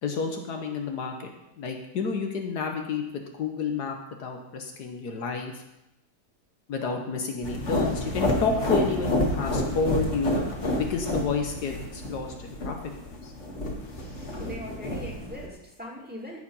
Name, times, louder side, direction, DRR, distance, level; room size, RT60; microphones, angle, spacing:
voice 1, 0.0-5.6 6.7-10.4 10.8-12.8 13.0-13.3, left 5 dB, 70° left, 3 dB, 1.5 m, -30 dB
sound 1, 7.4-15.5, left 1 dB, 45° left, 2.0 m, -29 dB
voice 2, 14.2-16.4, left 1 dB, 5° right, -3 dB, 2.2 m, -41 dB
14.0 x 5.0 x 5.5 m, 0.90 s
omnidirectional pair, 1.8 m